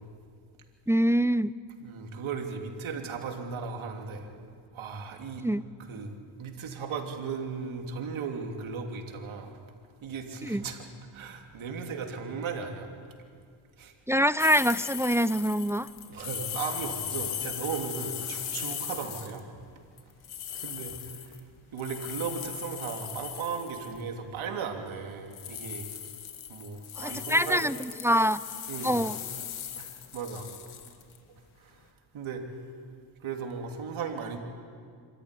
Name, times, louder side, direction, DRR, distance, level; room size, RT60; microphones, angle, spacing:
voice 1, 0.9-1.5 5.4-5.6 10.4-10.6 14.1-15.9 27.0-28.4 28.8-29.2, equal, 5° right, 16 dB, 0.5 m, -25 dB
voice 2, 1.8-4.3 4.7-5.4 5.9-6.1 6.4-9.5 10.0-10.9 11.1-12.9 13.8-13.9 16.1-19.4 20.5-21.2 21.7-25.9 26.5-27.7 28.7-29.0 29.8-30.5 31.6-31.7 32.1-32.4 33.2-34.4, right 5 dB, 70° right, 3 dB, 3.2 m, -36 dB
sound 1, 14.4-19.4 20.0-24.0 25.3-31.2, left 9 dB, 75° left, 2.0 m, -38 dB
26.0 x 13.5 x 9.9 m, 2.2 s
cardioid pair, 70°, 50 cm